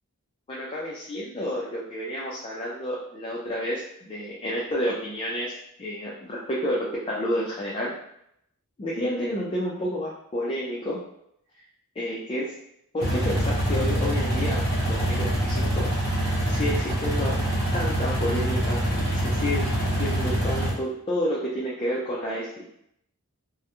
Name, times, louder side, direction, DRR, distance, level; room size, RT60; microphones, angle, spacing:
voice 1, 0.5-7.9 8.8-11.0 12.0-12.6 12.9-15.9 16.4-17.4 17.7-19.7 20.0-22.7, equal, 25° left, -5 dB, 0.3 m, -30 dB
sound 1, 13.0-20.7, right 1 dB, 45° left, 0.8 m, -25 dB
2.3 x 2.1 x 2.8 m, 0.74 s
head